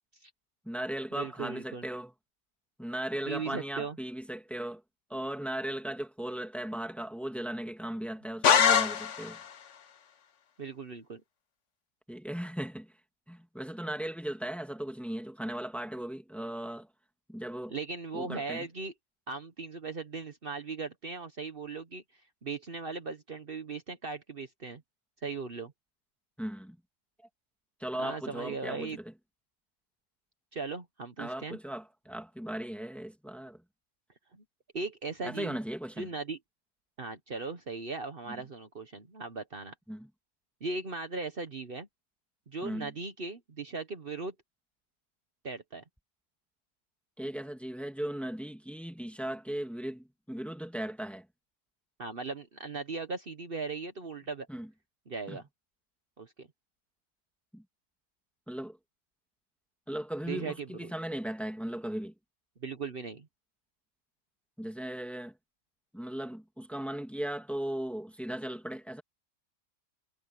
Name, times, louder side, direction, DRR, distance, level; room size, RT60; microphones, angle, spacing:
voice 1, 0.7-2.1 2.8-4.8 5.1-9.4 12.1-12.9 13.3-16.9 17.3-17.8 18.1-18.7 26.4-26.8 27.8-29.1 31.2-33.6 35.2-36.1 38.3-38.4 39.9-40.1 42.6-42.9 47.2-51.3 54.5-54.7 55.3-55.4 57.5-57.6 58.5-58.8 59.9-62.1 64.6-65.3 65.9-69.0, right 1 dB, ahead, 2.2 m, -37 dB
voice 2, 1.2-1.8 3.3-4.0 10.6-11.2 17.7-18.9 19.3-22.0 22.4-24.8 25.2-25.7 28.0-29.0 30.5-31.6 34.3-34.4 34.7-35.6 36.0-36.4 37.0-39.7 40.6-41.9 42.5-44.3 45.4-45.8 52.0-54.5 55.1-55.5 56.2-56.5 60.3-60.9 62.6-63.3, right 4 dB, 45° right, 1.4 m, -38 dB
sound 1, 8.4-9.5, left 7 dB, 70° left, 1.3 m, -23 dB
omnidirectional pair, 1.3 m